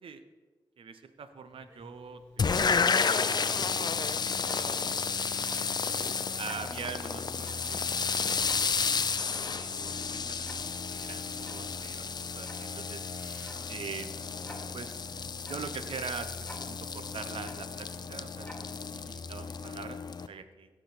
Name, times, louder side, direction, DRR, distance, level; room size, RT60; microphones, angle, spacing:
voice 1, 0.8-5.0 5.3-5.7 6.4-7.8 8.1-12.1 12.3-13.0 13.7-14.2 14.7-15.0 15.5-20.0 20.3-20.7, right 6 dB, 80° right, 10 dB, 0.7 m, -44 dB
Tick-tock, 1.2-19.5, left 1 dB, 10° left, 2.7 m, -52 dB
sound 1, 1.7-2.0 2.3-2.4 2.8-3.3 7.8-9.0 9.4-9.9 11.8-13.8 14.2-14.6 15.1-15.8 16.1-16.2, equal, 30° right, 2.6 m, -58 dB
sound 2, 2.4-20.3, left 5 dB, 50° left, 0.5 m, -32 dB
16.5 x 6.2 x 4.1 m, 1.3 s
cardioid pair, 75°, 9 cm